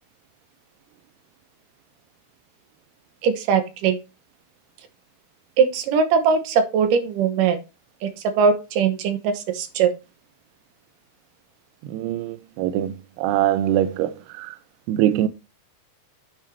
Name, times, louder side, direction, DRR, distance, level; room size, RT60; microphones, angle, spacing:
voice 1, 3.2-4.0 5.6-7.6 8.0-8.1 8.4-9.9, right 6 dB, 70° right, 2.2 m, -20 dB
voice 2, 11.9-14.6 14.9-15.3, right 12 dB, 90° right, 2.6 m, -23 dB
8.4 x 6.4 x 3.3 m
omnidirectional pair, 4.6 m